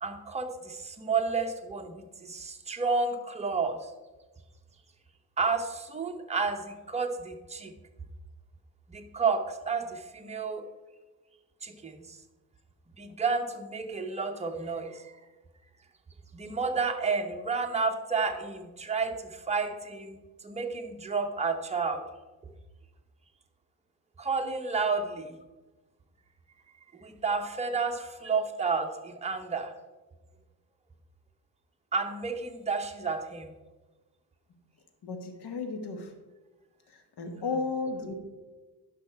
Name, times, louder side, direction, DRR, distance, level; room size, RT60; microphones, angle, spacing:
voice 1, 0.0-3.9 5.4-7.7 8.9-10.7 11.6-12.2 13.0-15.2 16.3-22.0 24.2-25.4 26.9-29.7 31.9-33.5 37.4-37.6, right 4 dB, 15° right, 3 dB, 0.9 m, -31 dB
voice 2, 35.0-36.1 37.2-38.1, left 4 dB, 75° left, 6 dB, 1.5 m, -33 dB
11.0 x 5.8 x 4.5 m, 1.2 s
cardioid pair, 110°, 40 cm